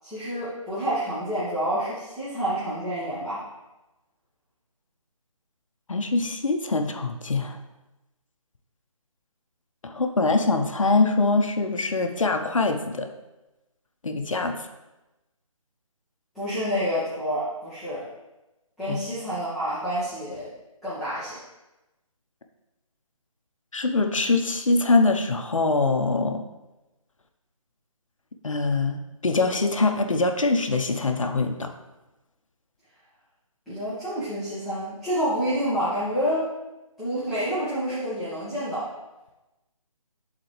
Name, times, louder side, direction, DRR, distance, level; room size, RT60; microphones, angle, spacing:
voice 1, 0.0-3.4 16.3-18.0 18.8-20.4 20.8-21.4 33.7-36.5 37.0-38.9, equal, ahead, -17 dB, 1.2 m, -28 dB
voice 2, 5.9-7.6 9.8-13.1 14.0-14.5 18.9-19.0 23.7-26.4 28.4-31.7, left 3 dB, 65° left, 5 dB, 0.8 m, -23 dB
11.5 x 4.1 x 3.2 m, 1.0 s
figure-of-eight pair, 150°, 18 cm